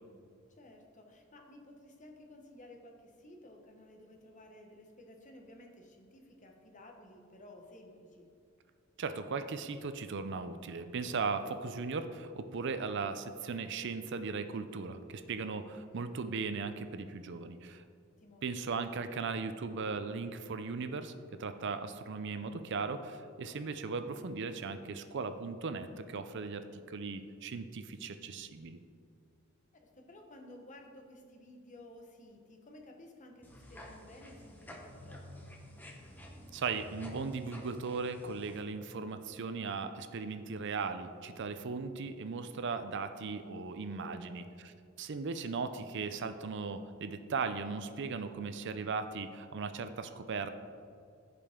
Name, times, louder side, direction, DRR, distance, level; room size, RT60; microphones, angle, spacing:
voice 1, 0.5-8.3 18.2-18.4 29.7-35.5 44.0-44.4, left 1 dB, 35° left, 3 dB, 1.2 m, -54 dB
voice 2, 9.0-17.8 18.4-21.1 21.4-28.8 36.5-44.7 45.0-50.5, right 4 dB, 60° right, 9 dB, 0.5 m, -38 dB
sound 1, 33.4-38.6, left 1 dB, 10° left, 1.0 m, -50 dB
15.0 x 5.2 x 3.7 m, 2.4 s
head